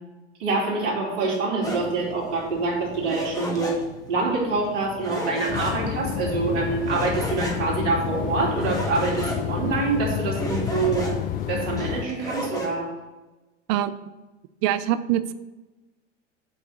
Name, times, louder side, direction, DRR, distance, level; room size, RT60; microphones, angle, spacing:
voice 1, 0.4-3.8 4.1-11.1 11.5-12.9, right 3 dB, 70° right, -3 dB, 2.9 m, -25 dB
sound 1, 1.6-12.7, left 1 dB, 10° left, 1.5 m, -35 dB
sound 2, 5.5-12.0, left 11 dB, 25° left, 0.3 m, -30 dB
voice 2, 13.7-14.1 14.6-15.3, right 12 dB, 45° right, 14 dB, 0.5 m, -24 dB
7.7 x 3.6 x 6.4 m, 1.1 s
hypercardioid pair, 105°, 37 cm